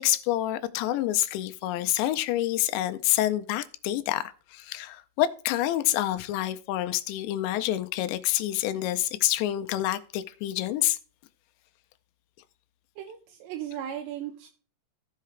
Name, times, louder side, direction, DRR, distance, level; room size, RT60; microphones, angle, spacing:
voice 1, 0.0-4.2 4.5-11.0, left 14 dB, 90° left, 2.9 m, -27 dB
voice 2, 13.0-14.5, right 10 dB, 85° right, 3.0 m, -36 dB
15.0 x 5.7 x 3.2 m
omnidirectional pair, 5.0 m